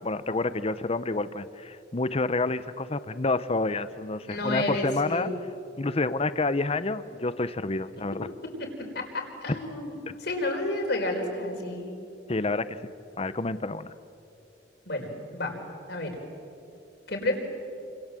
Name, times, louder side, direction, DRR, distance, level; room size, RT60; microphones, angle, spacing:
voice 1, 0.0-5.3 5.8-8.3 9.5-9.6 12.3-12.9 13.2-13.9, left 3 dB, 35° left, 14 dB, 0.8 m, -28 dB
voice 2, 4.2-5.3 8.0-8.1 8.6-11.9 14.9-15.6 15.9-16.2 17.1-17.4, left 1 dB, 60° left, 2 dB, 4.8 m, -31 dB
28.5 x 26.5 x 7.6 m, 2.7 s
head